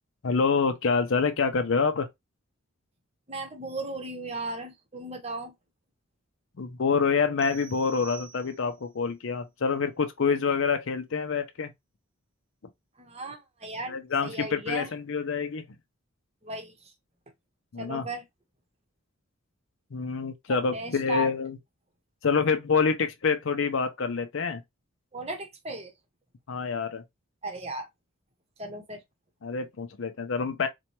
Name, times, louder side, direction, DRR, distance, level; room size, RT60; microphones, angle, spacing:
voice 1, 0.2-2.1 6.6-11.7 13.9-15.6 17.7-18.1 19.9-21.6 22.2-24.6 26.5-27.0 29.4-30.7, left 5 dB, 65° left, 0.5 m, -27 dB
voice 2, 3.3-5.5 13.0-14.9 16.4-16.9 17.8-18.2 20.5-21.3 25.1-25.9 27.4-27.9 28.6-29.0, right 1 dB, 30° right, 0.8 m, -36 dB
sound 1, 7.4-8.9, right 6 dB, 5° right, 1.2 m, -48 dB
4.1 x 2.2 x 2.9 m
head